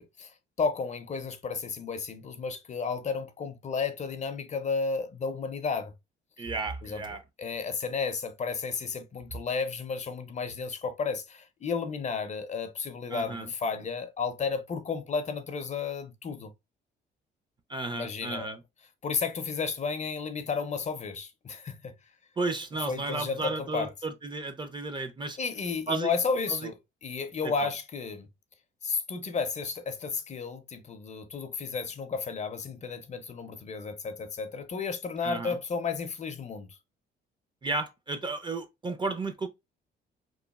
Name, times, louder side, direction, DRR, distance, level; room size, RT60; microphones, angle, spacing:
voice 1, 0.0-5.9 6.8-7.0 7.4-16.5 17.9-18.5 19.0-21.9 22.9-23.9 25.4-26.7 27.0-28.3 28.8-36.7, left 5 dB, 35° left, 0.4 m, -32 dB
voice 2, 6.4-7.2 13.1-13.5 17.7-18.6 22.4-25.4 25.9-26.1 26.5-26.7 27.4-27.7 35.2-35.6 37.6-39.5, right 3 dB, 25° right, 0.4 m, -33 dB
3.0 x 2.2 x 2.2 m
cardioid pair, 90°, 20 cm